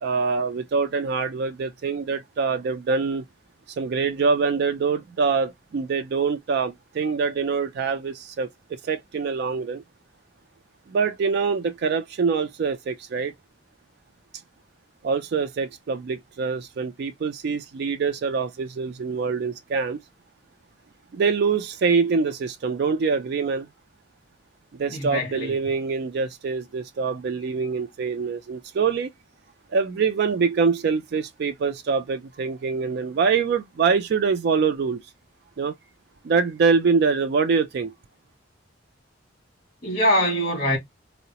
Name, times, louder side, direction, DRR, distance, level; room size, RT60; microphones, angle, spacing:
voice 1, 0.0-3.2 3.8-9.8 10.9-13.3 15.0-20.0 21.1-23.7 24.8-29.1 29.7-35.0 35.6-35.7 36.2-37.9, right 5 dB, 55° right, 0.3 m, -24 dB
voice 2, 24.9-25.5 39.8-40.8, equal, 45° left, 1.4 m, -23 dB
3.7 x 2.0 x 2.7 m
head